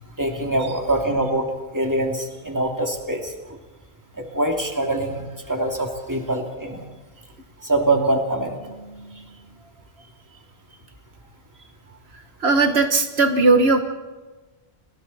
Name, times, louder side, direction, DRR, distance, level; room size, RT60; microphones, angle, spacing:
voice 1, 0.2-1.5 1.7-3.3 4.2-6.8 7.6-8.7, right 1 dB, 15° right, 2 dB, 2.7 m, -24 dB
voice 2, 8.6-9.5 12.1-13.8, right 3 dB, 75° right, 7 dB, 1.6 m, -20 dB
30.0 x 21.0 x 4.3 m, 1.2 s
omnidirectional pair, 1.1 m